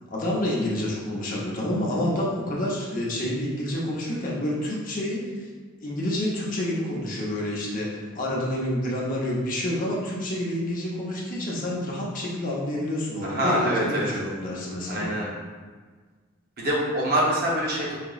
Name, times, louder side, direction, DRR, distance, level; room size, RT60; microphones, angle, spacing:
voice 1, 0.1-5.5 5.8-7.9 8.1-15.1, left 1 dB, 40° left, -4 dB, 0.6 m, -28 dB
voice 2, 13.2-14.1 14.9-15.3 16.6-18.0, right 1 dB, 45° right, -4 dB, 0.8 m, -25 dB
4.9 x 2.9 x 2.3 m, 1.4 s
head